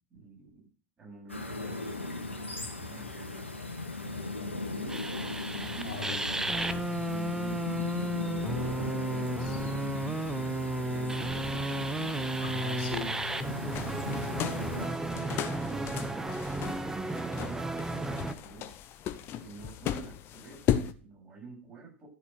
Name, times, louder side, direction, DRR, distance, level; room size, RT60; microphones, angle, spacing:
voice 1, 0.1-0.7 1.0-3.5 4.0-6.2 7.0-12.0 14.8-16.3 16.6-18.8 19.4-22.1, right 4 dB, 25° right, -2 dB, 8.0 m, -49 dB
sound 1, 1.3-14.9, left 2 dB, 85° left, 2.1 m, -38 dB
sound 2, 4.9-18.3, right 2 dB, 10° right, 0.9 m, -33 dB
voice 2, 5.8-6.8 9.4-9.6 12.4-13.2, left 5 dB, 55° left, 1 dB, 3.1 m, -40 dB
sound 3, 13.7-20.9, left 10 dB, 40° left, 1.0 m, -36 dB
13.0 x 7.0 x 6.5 m, 0.39 s
figure-of-eight pair, 90°, 6 cm